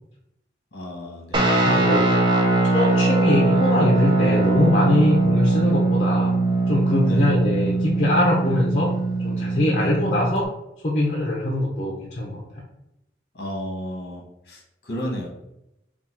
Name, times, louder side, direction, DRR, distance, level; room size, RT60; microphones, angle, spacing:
voice 1, 0.7-1.6 7.0-7.3 9.8-10.0 13.3-15.3, equal, 55° left, -1 dB, 1.0 m, -33 dB
Guitar, 1.3-10.4, right 2 dB, 25° right, 0.5 m, -21 dB
voice 2, 1.7-6.3 6.7-8.9 9.2-10.5 10.8-12.4, left 1 dB, 40° left, -4 dB, 0.7 m, -22 dB
3.6 x 2.3 x 4.2 m, 0.86 s
head